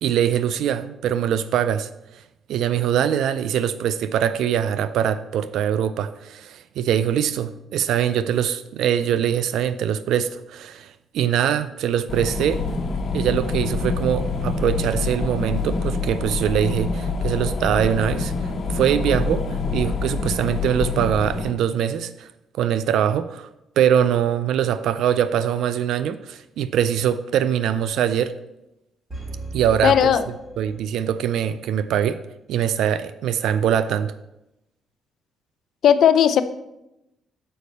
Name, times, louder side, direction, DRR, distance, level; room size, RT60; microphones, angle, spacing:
voice 1, 0.0-2.2 2.5-12.6 13.1-19.5 19.7-22.3 22.6-23.5 23.8-28.3 29.5-30.1 30.6-32.2 32.5-34.1, right 9 dB, 80° right, 13 dB, 0.3 m, -23 dB
sound 1, 12.1-21.5, left 3 dB, 50° left, 1.1 m, -26 dB
sound 2, 29.1-31.3 31.6-31.7, right 2 dB, 20° right, 1.6 m, -36 dB
voice 2, 29.8-30.2 35.8-36.4, left 9 dB, 70° left, 11 dB, 0.5 m, -16 dB
6.6 x 5.2 x 5.3 m, 0.90 s
cardioid pair, 90°, 0 cm